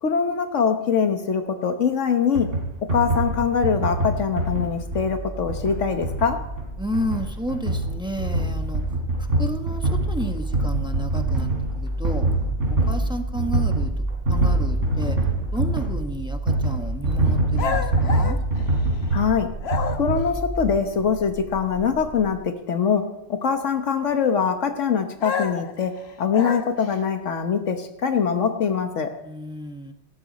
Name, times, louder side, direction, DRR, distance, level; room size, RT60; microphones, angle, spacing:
voice 1, 0.0-2.5 2.9-6.4 19.1-19.5 20.0-23.0 23.3-25.9 26.2-29.1, left 6 dB, 80° left, 6 dB, 1.4 m, -23 dB
sound 1, 2.4-20.7, right 2 dB, 90° right, 3.8 m, -25 dB
sound 2, 5.2-22.3, right 2 dB, 25° right, 3.3 m, -41 dB
voice 2, 6.8-11.5 11.8-12.3 12.7-15.2 15.5-18.4 29.2-29.9, equal, 5° right, 5 dB, 1.2 m, -32 dB
sound 3, 17.6-19.2 19.6-20.3 25.2-27.0, left 5 dB, 60° left, 1.3 m, -30 dB
18.0 x 13.5 x 4.2 m, 0.91 s
omnidirectional pair, 1.2 m